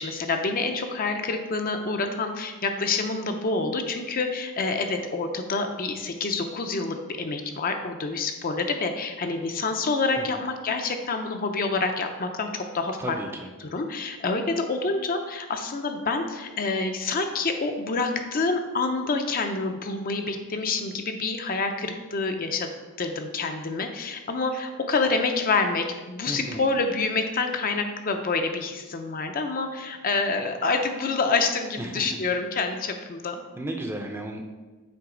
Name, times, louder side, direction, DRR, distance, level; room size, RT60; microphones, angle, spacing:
voice 1, 0.0-13.2 13.6-22.7 23.0-33.4, left 3 dB, 40° left, 5 dB, 0.5 m, -27 dB
voice 2, 13.0-13.5 26.3-26.6 31.8-32.2 33.6-34.4, right 1 dB, 10° right, 2 dB, 0.5 m, -34 dB
7.9 x 3.3 x 5.0 m, 1.3 s
head